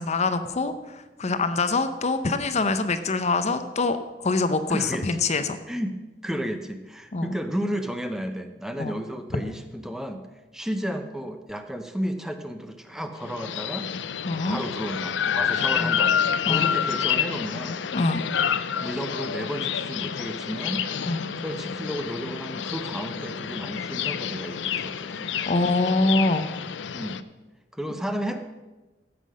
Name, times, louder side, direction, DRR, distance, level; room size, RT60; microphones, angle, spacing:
voice 1, 0.0-5.6 7.1-7.3 8.8-8.9 14.3-14.6 15.7-15.9 16.5-16.7 17.9-18.2 21.0-21.3 25.5-26.5, left 3 dB, 40° left, 10 dB, 0.7 m, -25 dB
voice 2, 4.7-5.1 5.7-5.9 6.2-10.2 10.5-13.9 14.5-16.1 16.5-17.8 18.6-20.9 21.4-25.4 26.9-27.2 27.7-28.4, equal, 5° right, 7 dB, 0.7 m, -32 dB
sound 1, 13.2-27.2, left 8 dB, 80° left, 0.5 m, -28 dB
14.5 x 6.0 x 6.3 m, 1.1 s
head